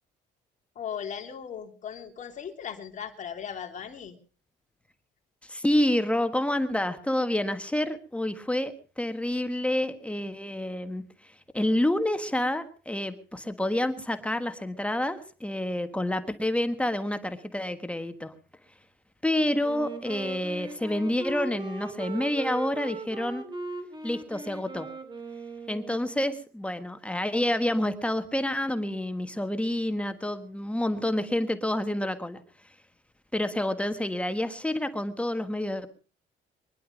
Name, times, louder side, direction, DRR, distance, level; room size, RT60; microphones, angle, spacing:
voice 1, 0.7-4.2, left 8 dB, 45° left, 4 dB, 3.0 m, -38 dB
voice 2, 5.4-18.3 19.2-23.4 24.0-24.9 25.7-32.4 33.3-35.9, left 1 dB, 5° left, 9 dB, 1.4 m, -28 dB
Wind instrument woodwind instrument, 19.6-26.3, right 3 dB, 25° right, 2.9 m, -39 dB
23.5 x 11.0 x 5.1 m, 0.39 s
cardioid pair, 110°, 17 cm